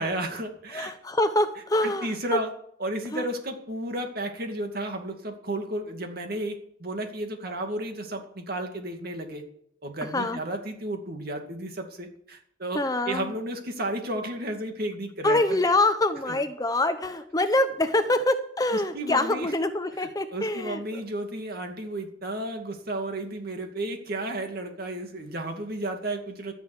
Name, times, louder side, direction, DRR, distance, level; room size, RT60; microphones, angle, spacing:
voice 1, 0.0-0.9 1.8-2.5 2.8-9.4 9.8-15.6 16.3-16.4 18.7-19.5 20.0-26.5, right 1 dB, 55° right, 4 dB, 2.3 m, -33 dB
voice 2, 0.7-2.4 3.1-3.2 10.0-10.4 12.7-13.3 15.2-21.0, left 2 dB, 20° left, 9 dB, 0.8 m, -25 dB
13.5 x 6.9 x 9.7 m, 0.69 s
head